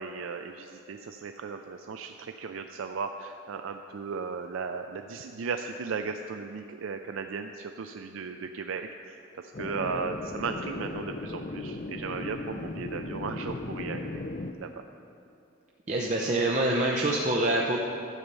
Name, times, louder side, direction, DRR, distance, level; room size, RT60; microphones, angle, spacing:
voice 1, 0.0-14.2 14.6-14.8, right 5 dB, 85° right, 6 dB, 0.4 m, -36 dB
sound 1, 9.5-14.5, left 2 dB, 40° left, 0.4 m, -37 dB
voice 2, 15.9-17.8, right 1 dB, 35° right, -3 dB, 0.7 m, -25 dB
12.0 x 8.0 x 5.5 m, 2.7 s
head